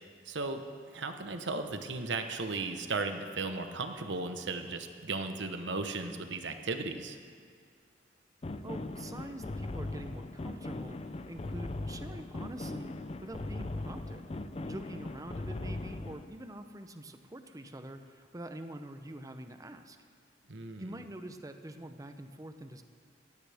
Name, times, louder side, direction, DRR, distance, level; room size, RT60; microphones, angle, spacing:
voice 1, 0.2-0.6 0.9-7.2 20.5-21.0, right 3 dB, 75° right, 7 dB, 1.1 m, -36 dB
sound 1, 8.4-16.2, left 2 dB, 30° left, 0.5 m, -39 dB
voice 2, 8.6-11.0 11.3-12.9 13.2-14.3 14.6-20.0 20.8-22.8, right 1 dB, 20° right, 8 dB, 0.7 m, -45 dB
18.0 x 15.0 x 3.5 m, 2.1 s
head